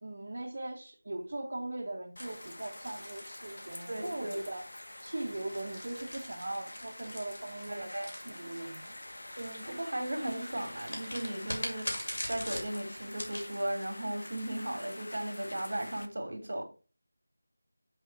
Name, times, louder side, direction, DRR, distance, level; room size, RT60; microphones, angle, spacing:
voice 1, 0.0-4.6 5.0-8.9, right 2 dB, 40° right, 0.8 m, -40 dB
sound 1, 2.2-16.1, left 1 dB, 80° left, 1.0 m, -47 dB
sound 2, 2.2-4.2 5.1-8.9 10.8-13.5, left 1 dB, 60° left, 2.6 m, -42 dB
voice 2, 3.9-4.4 7.7-8.1 9.4-16.6, right 1 dB, 55° right, 1.8 m, -36 dB
6.6 x 3.6 x 4.5 m
figure-of-eight pair, 180°, 0 cm